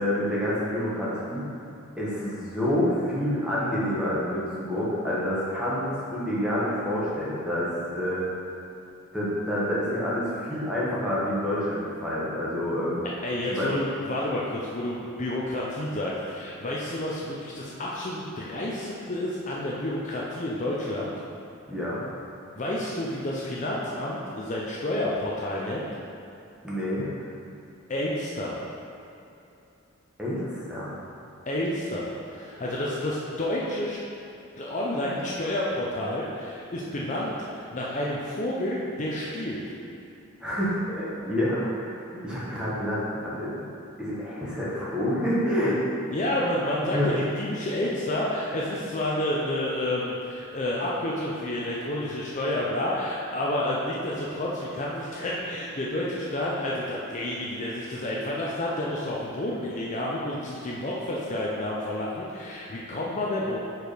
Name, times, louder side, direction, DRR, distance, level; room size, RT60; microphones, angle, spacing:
voice 1, 0.0-1.5 2.0-8.2 9.1-13.0 13.5-13.7 21.7-22.1 26.6-27.1 30.2-30.9 32.7-32.8 40.4-43.7 44.0-45.8 46.9-47.1, left 1 dB, 5° right, -9 dB, 1.3 m, -28 dB
voice 2, 13.2-21.1 22.6-25.9 27.9-28.6 31.5-34.0 34.6-39.6 46.1-63.6, left 1 dB, 35° left, -5 dB, 0.6 m, -30 dB
4.7 x 4.7 x 5.1 m, 2.7 s
head